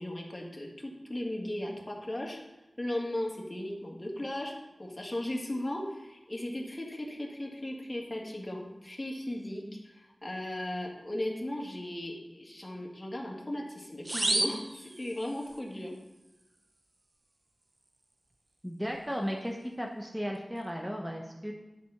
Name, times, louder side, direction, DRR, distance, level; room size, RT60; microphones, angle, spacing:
voice 1, 0.0-2.4 2.8-4.5 4.8-16.0, left 1 dB, 25° left, -1 dB, 1.9 m, -37 dB
sound 1, 14.1-15.6, right 2 dB, 50° right, 0.7 m, -31 dB
voice 2, 18.6-21.5, equal, 10° right, 1 dB, 0.9 m, -35 dB
10.5 x 4.2 x 5.8 m, 1.0 s
wide cardioid pair, 60°, 0 cm